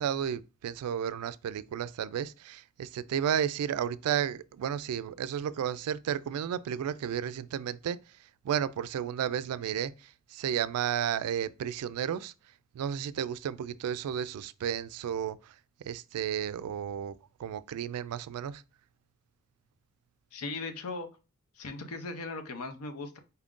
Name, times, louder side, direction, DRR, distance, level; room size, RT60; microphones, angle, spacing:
voice 1, 0.0-8.0 8.4-12.3 12.7-15.5 15.8-17.1 17.4-18.6, right 9 dB, 90° right, 0.3 m, -32 dB
voice 2, 20.3-21.1 21.6-23.2, left 3 dB, 90° left, 0.6 m, -38 dB
4.3 x 2.5 x 3.6 m
head